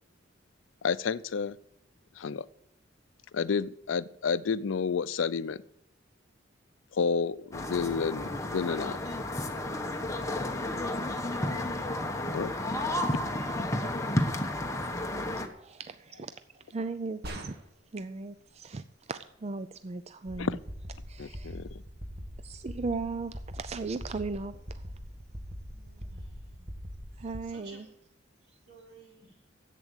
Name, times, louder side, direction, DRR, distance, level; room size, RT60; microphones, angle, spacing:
voice 1, 0.8-1.6 2.2-2.4 3.3-5.6 6.9-9.0 12.3-12.5 20.4-20.6 21.2-21.7, left 5 dB, 80° left, 17 dB, 0.5 m, -30 dB
sound 1, 7.5-15.5, left 1 dB, 15° left, 1.1 m, -32 dB
voice 2, 15.6-17.6 17.9-20.6 21.1-21.6 22.4-24.8 27.2-27.9, right 3 dB, 35° right, 11 dB, 0.4 m, -37 dB
sound 2, 17.2-18.0, equal, 55° right, 1.8 m, -41 dB
sound 3, 20.3-27.4, equal, 20° right, 1.2 m, -43 dB
voice 3, 25.7-26.7 27.2-27.9 28.7-29.4, right 3 dB, 80° right, -4 dB, 6.2 m, -55 dB
11.0 x 8.3 x 8.0 m, 0.78 s
head